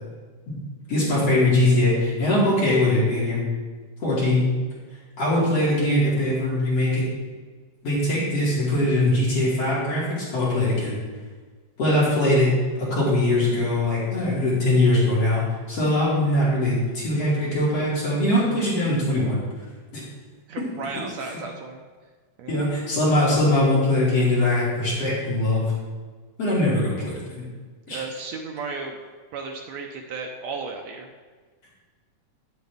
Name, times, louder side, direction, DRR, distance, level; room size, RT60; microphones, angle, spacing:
voice 1, 0.9-3.4 4.0-4.5 5.2-7.0 7.8-10.9 11.8-12.5 12.8-15.4 15.7-19.4 19.9-20.0 20.6-20.7 22.5-25.7 26.4-27.4 27.9-28.0, left 1 dB, 50° left, -8 dB, 3.4 m, -21 dB
voice 2, 20.5-21.8 22.4-22.6 27.9-29.0 29.3-31.1, right 4 dB, 75° right, 2 dB, 1.7 m, -34 dB
10.0 x 8.1 x 3.5 m, 1.4 s
omnidirectional pair, 3.7 m